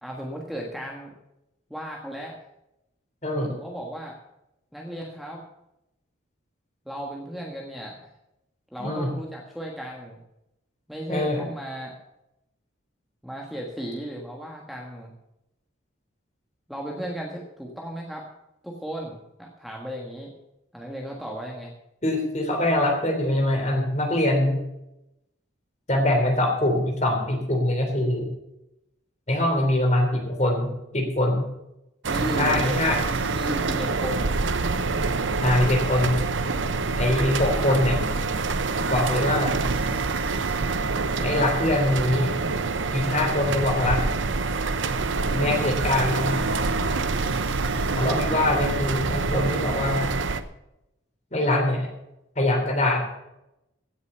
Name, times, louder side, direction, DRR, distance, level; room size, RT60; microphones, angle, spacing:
voice 1, 0.0-1.1 1.7-2.4 3.5-4.1 4.7-5.4 6.8-7.9 8.7-10.2 10.9-11.9 13.2-15.1 16.7-18.3 18.6-20.3 20.7-21.7 30.1-30.2 32.1-32.8 33.1-34.4 45.2-45.6, equal, ahead, -1 dB, 1.5 m, -35 dB
voice 2, 8.8-9.1 11.1-11.4 22.0-24.6 25.9-28.3 29.3-31.5 32.4-33.0 35.4-36.2 37.0-38.0 38.9-39.5 41.2-42.3 42.9-44.0 45.3-46.3 47.9-50.1 51.3-51.9 52.3-53.0, left 1 dB, 35° left, 2 dB, 3.1 m, -23 dB
sound 1, 32.0-50.4, right 3 dB, 70° right, 0.8 m, -26 dB
16.0 x 7.0 x 6.8 m, 0.88 s
head